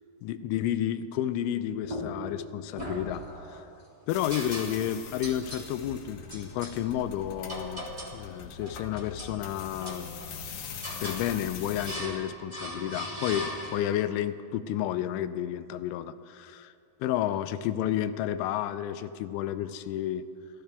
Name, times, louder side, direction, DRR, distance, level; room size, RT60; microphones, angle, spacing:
voice 1, 0.2-3.6 4.1-7.8 8.1-10.1 11.0-16.7 17.0-20.3, left 11 dB, 85° left, 11 dB, 3.0 m, -31 dB
sound 1, 1.8-2.4 2.8-3.6 4.3-4.9 5.2-5.7 6.3-6.8 7.5-8.2 8.6-9.4 9.8-10.4 10.8-11.3 11.8-12.2 12.5-14.0, equal, 30° right, 0.7 m, -38 dB
sound 2, 4.1-12.0, left 6 dB, 65° left, 2.2 m, -43 dB
29.5 x 14.0 x 3.4 m, 2.5 s
omnidirectional pair, 5.6 m